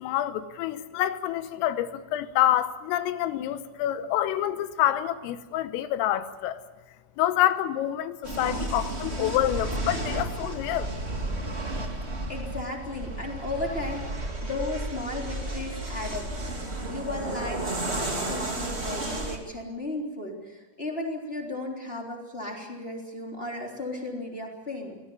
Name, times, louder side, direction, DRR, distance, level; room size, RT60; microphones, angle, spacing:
voice 1, 0.0-6.6 7.2-10.9, left 12 dB, 90° left, 3.6 m, -27 dB
sound 1, 8.2-19.4, right 2 dB, 40° right, 0.9 m, -32 dB
voice 2, 12.3-16.6 16.9-25.0, left 2 dB, 15° left, 3.0 m, -35 dB
24.5 x 17.0 x 9.6 m
omnidirectional pair, 5.8 m